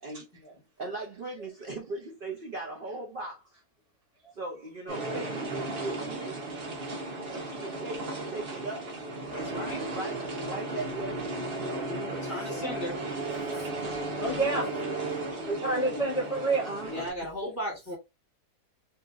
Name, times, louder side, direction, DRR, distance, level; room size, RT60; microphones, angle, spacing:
voice 1, 0.1-0.6 1.4-1.5 5.1-5.2 13.0-13.4 14.2-14.7 15.5-16.7, right 3 dB, 35° left, 0.6 m, -30 dB
voice 2, 0.8-3.4 4.3-6.4 7.2-8.9 9.3-11.9 12.2-12.7 13.8-14.7 15.9-16.0 16.6-17.1 17.4-17.5, right 2 dB, 85° right, 0.4 m, -39 dB
sound 1, 4.9-17.1, right 2 dB, 45° right, 0.8 m, -35 dB
voice 3, 9.3-9.8 11.7-12.9 13.3-13.7 16.9-18.0, equal, 10° left, 1.0 m, -37 dB
2.7 x 2.6 x 2.4 m
omnidirectional pair, 1.7 m